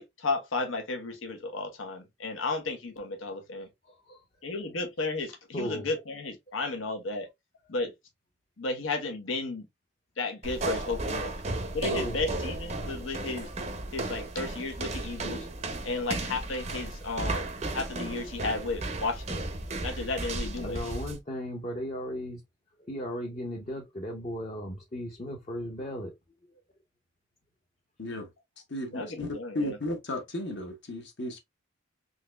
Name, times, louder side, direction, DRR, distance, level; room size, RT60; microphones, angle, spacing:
voice 1, 0.0-3.7 4.4-7.3 7.7-7.9 8.6-9.7 10.2-11.3 11.7-13.5 13.9-15.5 15.8-17.5 17.7-19.4 19.8-20.8 28.9-29.8, left 3 dB, 85° left, 1.0 m, -33 dB
voice 2, 3.8-4.2 5.5-5.9 11.9-12.3 20.6-22.4 22.8-26.1 26.5-26.6, equal, 35° left, 0.6 m, -36 dB
sound 1, 10.4-21.2, right 2 dB, 35° right, 0.6 m, -34 dB
voice 3, 28.7-31.4, left 1 dB, 60° left, 0.9 m, -34 dB
3.8 x 3.0 x 2.2 m
head